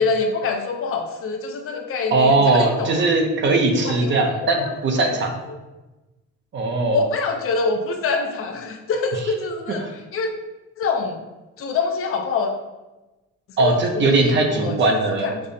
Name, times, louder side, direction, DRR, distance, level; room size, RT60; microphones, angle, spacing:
voice 1, 0.0-3.0 3.8-5.1 5.5-5.6 6.9-10.3 10.8-11.3 11.6-12.5 13.6-15.4, left 4 dB, 50° left, 3 dB, 0.5 m, -25 dB
voice 2, 2.1-5.3 6.5-7.0 9.8-9.9 13.6-15.3, right 2 dB, 40° right, 3 dB, 0.5 m, -19 dB
5.3 x 2.0 x 2.6 m, 1.1 s
cardioid pair, 125°, 29 cm